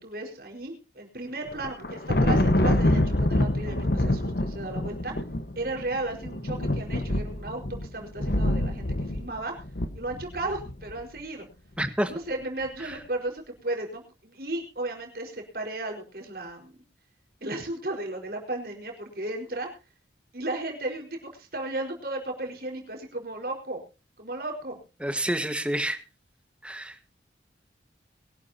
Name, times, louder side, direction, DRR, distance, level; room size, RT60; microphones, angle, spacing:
voice 1, 0.0-5.1 5.5-7.6 7.9-9.5 9.9-11.5 12.1-16.8 17.4-19.7 20.3-23.8 24.2-24.8, right 2 dB, 55° right, 2 dB, 4.9 m, -34 dB
Thunder, 1.5-10.9, left 1 dB, 60° left, 1.4 m, -26 dB
voice 2, 11.8-12.1 25.0-26.0 26.6-26.9, right 1 dB, 5° right, 7 dB, 1.6 m, -28 dB
22.5 x 12.0 x 2.9 m, 0.32 s
head